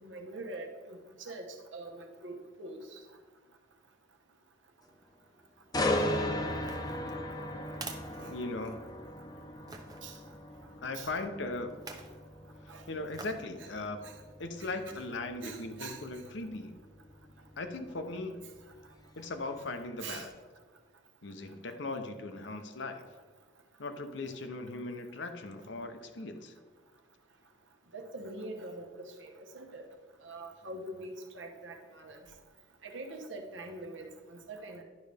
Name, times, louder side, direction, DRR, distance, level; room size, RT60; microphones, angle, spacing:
voice 1, 0.0-3.0 8.2-8.3 10.0-10.2 10.9-11.1 12.7-12.8 13.6-13.7 14.0-14.1 14.6-15.0 15.4-16.0 20.0-20.3 27.9-29.9 30.2-32.2 32.8-34.8, right 2 dB, 80° right, 4 dB, 1.0 m, -44 dB
sound 1, 5.7-19.6 20.0-20.3, left 1 dB, 20° left, 0.7 m, -37 dB
sound 2, 6.6-9.0 9.7-10.0 11.7-12.2 13.1-13.5 14.0-14.1, right 4 dB, 20° right, 0.6 m, -47 dB
voice 2, 8.3-8.9 10.8-11.7 12.9-14.0 14.4-16.7 17.6-18.4 19.2-20.3 21.2-23.0 23.8-26.5, left 2 dB, 70° left, 7 dB, 0.7 m, -38 dB
10.5 x 5.3 x 3.4 m, 1.4 s
head